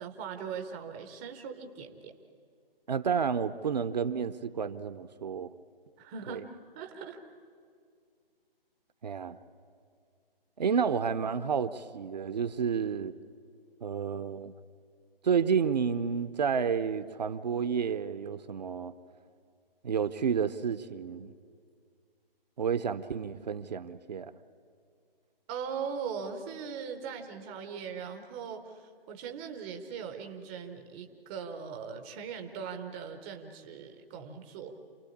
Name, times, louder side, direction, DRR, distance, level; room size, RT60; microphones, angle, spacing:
voice 1, 0.0-2.1 6.0-6.4 6.7-7.2 25.5-34.8, right 6 dB, 10° right, 0.7 m, -40 dB
voice 2, 2.9-5.5 6.3-6.4 9.0-9.4 10.6-13.1 13.8-14.5 15.2-18.9 19.8-21.3 22.6-24.3, right 6 dB, 45° right, 0.7 m, -30 dB
28.0 x 18.5 x 8.6 m
figure-of-eight pair, 150°, 29 cm